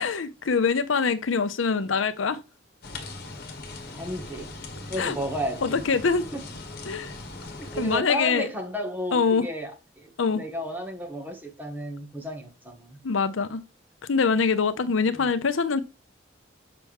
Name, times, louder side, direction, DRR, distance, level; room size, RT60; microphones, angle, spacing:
voice 1, 0.0-2.4 5.0-5.2 5.6-6.3 6.9-7.1 7.8-8.5 9.1-9.5 10.2-10.4 13.0-13.6 14.0-15.8, left 5 dB, 90° left, 0.7 m, -24 dB
sound 1, 2.8-8.0, left 2 dB, 55° left, 1.5 m, -40 dB
voice 2, 3.9-4.5 4.9-5.8 6.3-6.4 7.6-13.0 15.1-15.3, equal, 10° right, 1.7 m, -33 dB
7.1 x 5.9 x 3.5 m
head